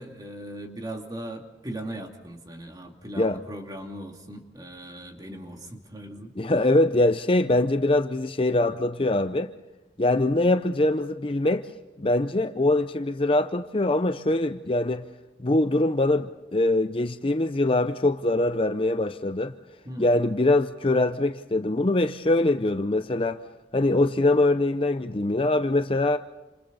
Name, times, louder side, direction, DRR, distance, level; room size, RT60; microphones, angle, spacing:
voice 1, 0.0-6.3 19.8-20.2, right 1 dB, 20° right, 2.6 m, -39 dB
voice 2, 6.4-9.5 10.0-11.7 12.0-15.1 15.4-19.5 20.0-23.4 23.7-26.2, left 2 dB, 30° left, 0.7 m, -23 dB
29.5 x 27.5 x 4.1 m
head